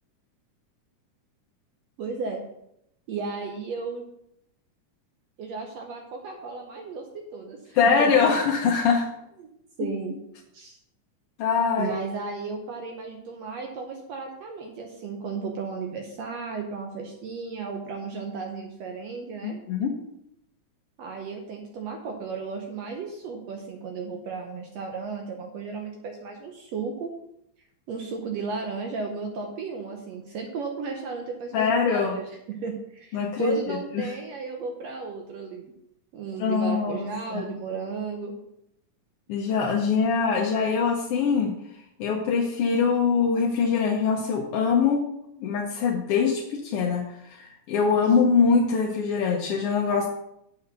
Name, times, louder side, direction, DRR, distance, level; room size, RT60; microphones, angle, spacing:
voice 1, 2.0-2.4 3.1-4.1 5.4-8.1 9.4-9.5 9.8-10.1 10.5-10.7 11.8-19.6 21.0-27.1 27.9-35.7 36.1-38.3, right 4 dB, 70° right, 3 dB, 1.8 m, -34 dB
voice 2, 7.7-9.1 11.4-12.0 19.4-19.9 31.5-32.1 33.1-34.1 36.4-37.5 39.3-41.5 42.0-45.0 45.4-50.1, left 5 dB, 70° left, 0 dB, 1.5 m, -23 dB
7.8 x 5.7 x 6.7 m, 0.77 s
omnidirectional pair, 3.6 m